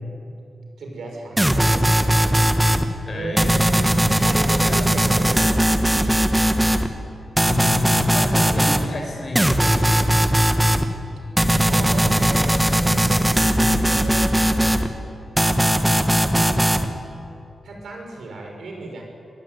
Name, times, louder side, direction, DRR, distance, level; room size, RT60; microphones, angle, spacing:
voice 1, 0.8-2.5 3.1-5.5 11.7-13.4 13.8-14.6 17.6-19.0, right 2 dB, 85° right, 1 dB, 6.1 m, -33 dB
sound 1, 1.4-2.8 3.4-6.9 7.4-8.9 9.4-10.8 11.4-14.9 15.4-16.9, right 1 dB, 10° right, 1.2 m, -19 dB
voice 2, 3.1-3.6 7.4-10.2 13.6-13.9, left 2 dB, 40° left, 2 dB, 5.8 m, -30 dB
25.5 x 21.0 x 9.6 m, 2.8 s
wide cardioid pair, 170°, 0 cm